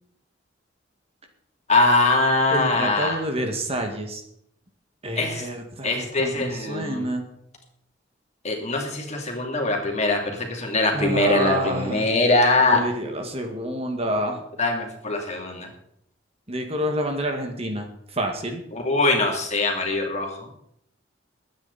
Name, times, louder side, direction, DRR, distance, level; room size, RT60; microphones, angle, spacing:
voice 1, 1.7-3.2 5.1-5.5 5.8-7.0 8.4-12.8 14.6-15.7 18.7-20.6, left 2 dB, 35° left, 2 dB, 3.0 m, -22 dB
voice 2, 2.5-4.2 5.0-7.2 10.9-12.1 12.7-14.4 16.5-18.6, right 1 dB, 30° right, 4 dB, 1.9 m, -28 dB
22.5 x 9.4 x 4.2 m, 0.73 s
head